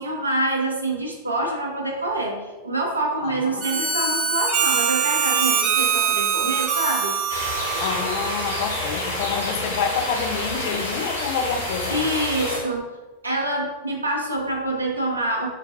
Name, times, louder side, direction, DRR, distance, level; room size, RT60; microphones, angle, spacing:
voice 1, 0.0-7.2 11.9-12.9 13.2-15.5, right 2 dB, 80° right, 0 dB, 0.5 m, -26 dB
voice 2, 3.2-3.6 7.8-12.1, left 6 dB, 50° left, 5 dB, 0.4 m, -28 dB
Harmonica, 3.6-8.8, right 7 dB, 30° right, 0.5 m, -23 dB
sound 1, 7.3-12.6, left 1 dB, 70° left, 0.8 m, -28 dB
3.7 x 2.2 x 2.6 m, 1.1 s
figure-of-eight pair, 90°, 0 cm